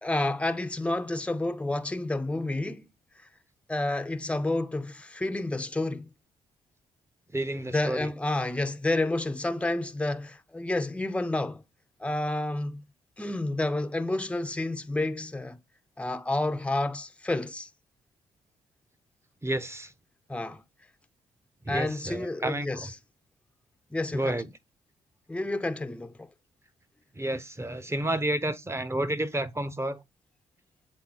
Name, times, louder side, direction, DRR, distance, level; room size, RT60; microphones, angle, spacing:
voice 1, 0.0-2.8 3.7-6.1 7.7-11.6 12.0-12.8 13.2-15.6 16.0-17.7 20.3-20.6 21.7-22.9 23.9-24.4 25.3-26.3, left 2 dB, 10° left, 0.7 m, -30 dB
voice 2, 7.3-8.1 19.4-19.9 21.6-22.9 24.1-24.5 27.1-30.0, right 1 dB, 15° right, 0.9 m, -30 dB
7.8 x 3.9 x 3.7 m
supercardioid pair, 60°, 16 cm